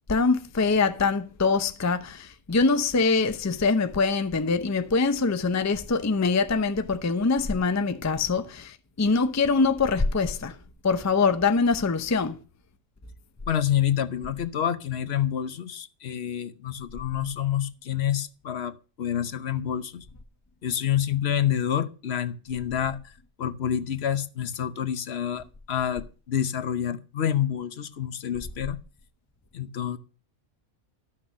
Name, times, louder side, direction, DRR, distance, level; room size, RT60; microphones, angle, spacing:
voice 1, 0.1-10.6 10.8-12.4, left 4 dB, 20° left, 0.5 m, -24 dB
voice 2, 13.5-20.1 20.6-23.1 23.4-28.8 29.5-30.0, left 10 dB, 60° left, 1.0 m, -28 dB
12.5 x 6.0 x 6.3 m
omnidirectional pair, 1.3 m